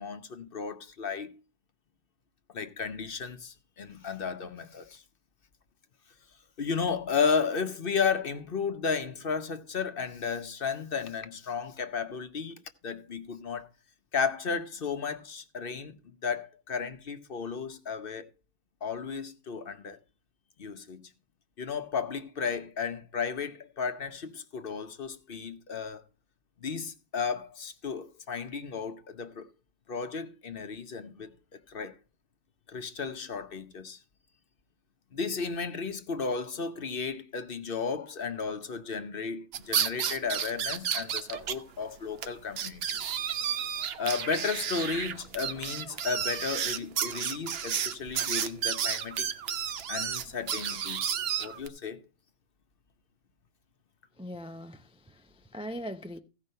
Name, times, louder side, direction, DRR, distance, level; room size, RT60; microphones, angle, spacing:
voice 1, 0.0-1.3 2.5-5.0 6.6-13.7 14.1-16.0 16.2-18.3 18.8-20.0 20.6-21.0 21.6-26.0 26.6-29.5 29.9-32.0 32.7-34.0 35.1-42.8 44.0-49.3 49.9-52.0, left 5 dB, 50° left, 1.0 m, -33 dB
sound 1, 39.5-41.5 41.8-41.9 42.2-42.3 42.6-51.7, right 8 dB, 60° right, 0.9 m, -32 dB
voice 2, 54.2-56.2, equal, 10° right, 0.4 m, -41 dB
15.5 x 5.4 x 5.4 m
omnidirectional pair, 1.2 m